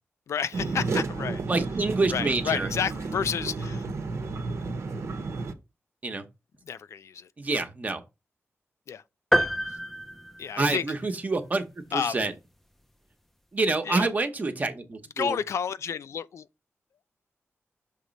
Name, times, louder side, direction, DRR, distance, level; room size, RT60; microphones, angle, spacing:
voice 1, 0.3-1.4 2.1-3.8 6.7-7.3 8.9-9.0 9.4-9.5 10.4-10.8 11.9-12.2 13.8-14.1 15.2-16.5, left 7 dB, 80° left, 0.3 m, -30 dB
sound 1, 0.5-5.5, right 3 dB, 75° right, 0.9 m, -31 dB
voice 2, 1.5-2.7 6.0-6.2 7.4-8.0 10.6-11.6 11.9-12.3 13.5-15.4, right 3 dB, 35° right, 0.9 m, -27 dB
sound 2, 9.3-11.1, equal, 5° left, 0.5 m, -27 dB
6.5 x 3.0 x 5.2 m
wide cardioid pair, 125°, 5 cm